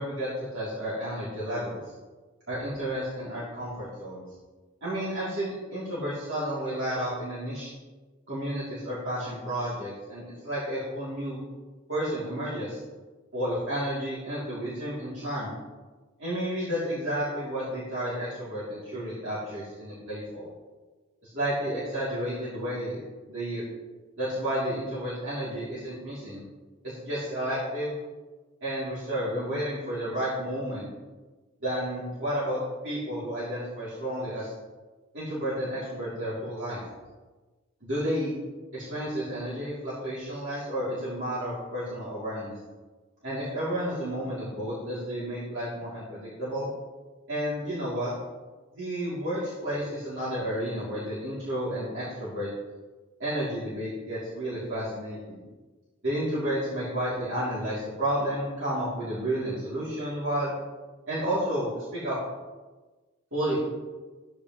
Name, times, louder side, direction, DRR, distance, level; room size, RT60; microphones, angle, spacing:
voice 1, 0.0-1.8 2.5-4.2 4.8-7.7 8.3-11.4 11.9-12.8 13.3-15.5 16.2-20.5 21.2-23.6 24.2-26.4 26.8-28.0 28.6-30.9 31.6-32.6 32.8-34.5 35.1-36.8 37.8-38.3 38.7-42.5 43.2-46.7 47.3-48.1 48.7-52.5 53.2-55.4 56.0-60.5 61.1-62.2 63.3-63.6, equal, 60° right, -10 dB, 3.2 m, -31 dB
14.0 x 8.8 x 3.2 m, 1.3 s
head